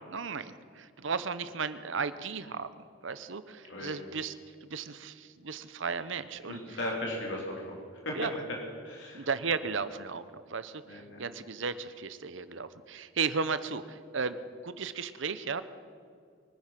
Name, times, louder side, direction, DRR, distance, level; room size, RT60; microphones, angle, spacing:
voice 1, 0.0-4.3 4.6-6.8 8.1-8.3 9.1-14.4 14.6-15.6, right 5 dB, 65° right, 13 dB, 0.8 m, -35 dB
voice 2, 6.4-8.2 8.8-9.2 10.8-11.2, left 1 dB, 60° left, -2 dB, 3.5 m, -37 dB
24.0 x 10.0 x 5.9 m, 2.2 s
head